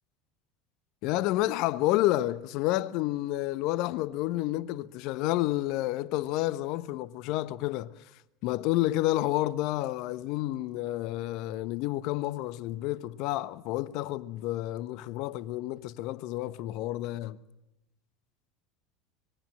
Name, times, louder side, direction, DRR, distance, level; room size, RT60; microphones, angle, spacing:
voice 1, 1.0-7.9 8.4-17.4, left 16 dB, 55° left, 1.0 m, -30 dB
26.0 x 22.0 x 7.7 m
hypercardioid pair, 75°, 0 cm